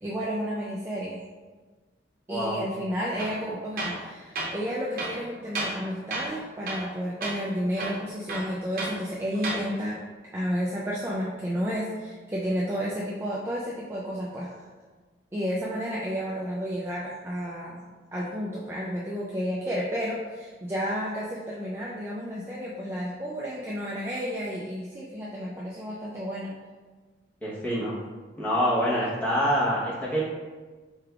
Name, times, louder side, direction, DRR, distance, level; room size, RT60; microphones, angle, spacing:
voice 1, 0.0-1.2 2.3-10.0 10.3-14.5 15.3-26.5, equal, 15° right, -6 dB, 0.3 m, -31 dB
Tools, 3.2-3.4 3.8-4.0 4.3-4.5 5.0-5.8 6.1-6.4 6.7-6.9 7.2-7.4 7.8-9.0 9.3-9.6, right 2 dB, 50° right, 0.8 m, -32 dB
voice 2, 27.4-27.9 28.4-30.2, equal, 10° left, -8 dB, 1.0 m, -26 dB
4.4 x 3.3 x 2.4 m, 1.4 s
head